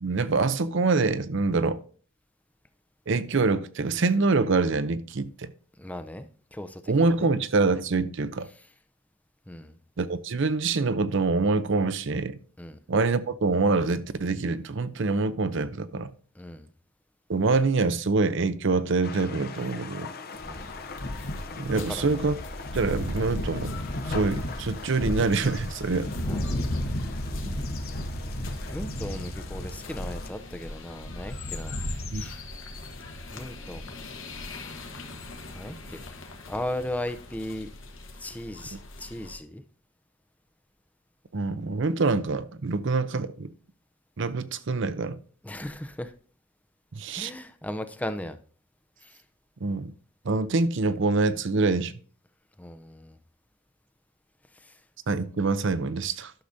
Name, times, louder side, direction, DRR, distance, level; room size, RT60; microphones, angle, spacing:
voice 1, 0.0-1.8 3.1-5.5 6.9-8.5 10.0-12.4 12.9-16.1 17.3-20.1 21.6-22.4 22.7-23.7 24.1-26.1 27.4-27.5 32.1-32.2 41.3-43.5 44.2-45.2 46.9-47.3 49.6-49.9 50.2-51.9 55.1-56.3, right 3 dB, 60° right, 0.6 m, -25 dB
voice 2, 5.8-7.3 9.5-9.8 12.6-12.8 16.3-16.7 20.4-20.7 21.7-22.0 26.2-26.7 28.7-31.8 32.1-32.4 33.3-33.9 35.5-36.0 36.5-37.7 38.2-39.6 45.4-46.1 47.1-48.4 49.0-49.2 52.6-53.2 54.5-54.8, left 1 dB, 5° left, 0.5 m, -37 dB
sound 1, 19.0-30.3, left 4 dB, 50° left, 0.7 m, -42 dB
sound 2, 20.3-39.3, left 1 dB, 70° left, 1.3 m, -35 dB
sound 3, 25.3-25.6 26.4-26.8 27.2-29.3 30.7-30.8 31.2-32.9, left 9 dB, 85° left, 1.4 m, -44 dB
11.5 x 6.4 x 2.7 m
head